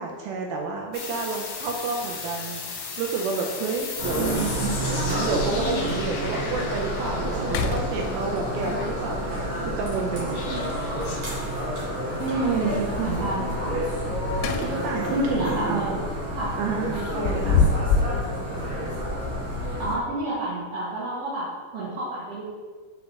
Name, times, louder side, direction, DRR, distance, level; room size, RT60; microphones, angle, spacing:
voice 1, 0.0-4.4 4.8-10.4 12.4-12.9 14.4-16.0 16.6-17.6, right 4 dB, 80° right, 1 dB, 2.2 m, -30 dB
sound 1, 0.9-9.4 10.3-11.4, left 4 dB, 75° left, 2.2 m, -36 dB
sound 2, 1.6-1.7 3.5-3.6 4.0-4.1 4.3-4.9 5.5-5.6 6.1-6.2 6.6-7.0 7.4-8.5 10.6-11.2 14.0-15.0 15.4-15.6 16.9-18.3, left 4 dB, 90° left, 2.6 m, -26 dB
sound 3, 4.0-19.9, equal, 45° right, 1.9 m, -29 dB
voice 2, 4.1-4.7 12.2-13.7 15.1-15.9 16.3-16.5 19.8-22.4, right 2 dB, 60° right, -10 dB, 1.6 m, -29 dB
5.8 x 5.2 x 3.5 m, 1.5 s
omnidirectional pair, 4.6 m